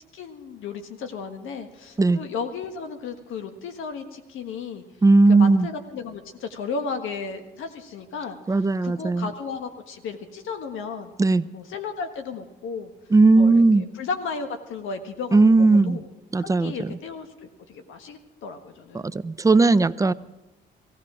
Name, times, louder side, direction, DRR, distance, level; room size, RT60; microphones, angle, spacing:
voice 1, 0.1-4.8 5.3-8.4 8.8-11.1 11.5-12.9 13.3-16.1 16.4-19.1, left 5 dB, 80° left, 7 dB, 1.5 m, -34 dB
voice 2, 5.0-5.7 8.5-9.3 11.2-11.5 13.1-13.8 15.3-16.0 16.3-16.9 18.9-20.1, right 3 dB, 15° right, 15 dB, 0.5 m, -17 dB
17.5 x 16.0 x 4.9 m, 1.0 s
cardioid pair, 90°, 20 cm